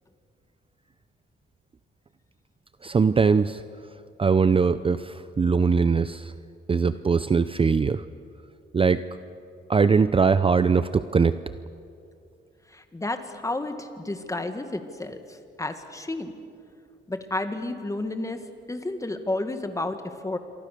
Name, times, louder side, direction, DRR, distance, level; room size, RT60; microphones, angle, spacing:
voice 1, 2.8-3.6 4.2-6.3 6.7-8.0 8.7-9.0 9.7-11.3, right 5 dB, 25° right, 13 dB, 0.6 m, -21 dB
voice 2, 12.7-16.3 17.1-20.4, left 2 dB, 15° left, 7 dB, 2.0 m, -31 dB
27.5 x 24.0 x 6.8 m, 2.5 s
cardioid pair, 110°, 21 cm